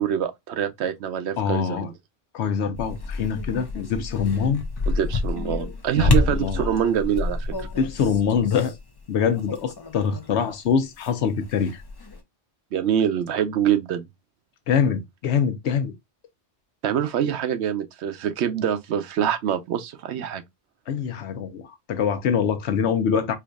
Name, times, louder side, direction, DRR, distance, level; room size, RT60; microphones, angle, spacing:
voice 1, 0.0-1.9 4.9-7.7 12.7-14.1 16.8-20.4, right 9 dB, 75° right, 0.9 m, -25 dB
voice 2, 1.4-1.9 2.3-4.6 5.9-6.8 7.8-8.7 9.1-11.8 14.7-15.9 20.9-23.4, left 7 dB, 80° left, 1.0 m, -24 dB
sound 1, 2.7-10.4 10.6-12.2, left 3 dB, 30° left, 0.5 m, -28 dB
4.5 x 2.6 x 2.3 m
omnidirectional pair, 1.1 m